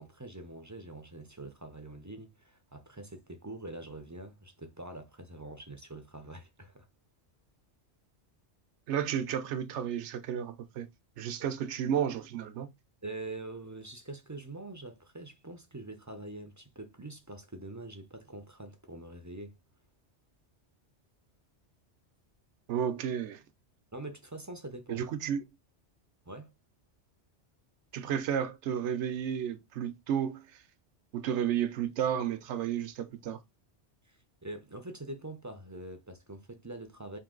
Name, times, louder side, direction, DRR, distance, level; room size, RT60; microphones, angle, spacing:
voice 1, 0.0-6.9 11.4-11.5 13.0-19.6 23.9-25.0 26.3-26.5 34.0-37.2, right 2 dB, 25° right, 0.4 m, -44 dB
voice 2, 8.9-10.9 11.2-12.7 22.7-23.4 24.9-25.4 27.9-30.6 31.1-33.4, right 9 dB, 80° right, 0.9 m, -32 dB
3.8 x 2.7 x 3.7 m
omnidirectional pair, 1.2 m